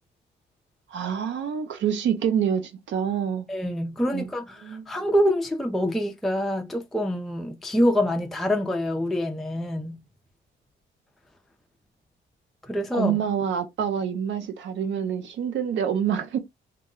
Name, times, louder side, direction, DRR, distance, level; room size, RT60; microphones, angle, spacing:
voice 1, 0.9-3.5 4.1-4.3 4.6-4.8 12.9-16.4, right 8 dB, 70° right, 0.7 m, -26 dB
voice 2, 3.5-10.0 12.7-13.2, equal, ahead, 0.4 m, -26 dB
2.2 x 2.1 x 3.7 m
cardioid pair, 90°, 20 cm